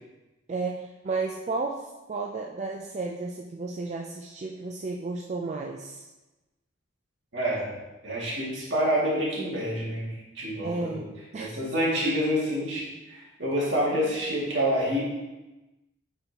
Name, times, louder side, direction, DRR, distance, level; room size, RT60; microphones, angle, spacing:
voice 1, 0.5-6.0 10.6-11.1 11.3-11.6, right 3 dB, 35° right, 1 dB, 0.3 m, -33 dB
voice 2, 7.3-7.7 8.0-11.0 11.4-15.0, equal, 60° right, -6 dB, 2.2 m, -27 dB
8.8 x 4.3 x 2.9 m, 1.1 s
head